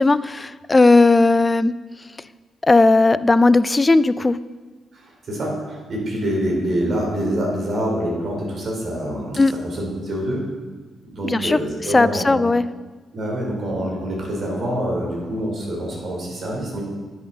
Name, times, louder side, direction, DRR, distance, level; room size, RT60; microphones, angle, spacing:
voice 1, 0.0-1.7 2.6-4.4 9.4-9.5 11.2-11.6 11.9-12.6, left 3 dB, 25° left, 16 dB, 0.4 m, -16 dB
voice 2, 4.9-10.4 11.0-12.4 13.1-16.8, right 1 dB, 60° right, -1 dB, 3.1 m, -26 dB
10.0 x 8.0 x 3.9 m, 1.3 s
supercardioid pair, 60°, 0 cm